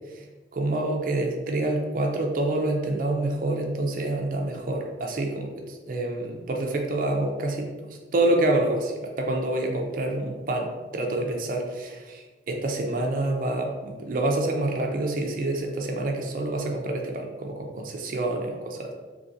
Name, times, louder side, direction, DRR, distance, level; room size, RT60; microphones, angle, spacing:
voice 1, 0.5-18.9, right 2 dB, 45° right, 1 dB, 0.4 m, -27 dB
3.8 x 2.8 x 2.6 m, 1.3 s
head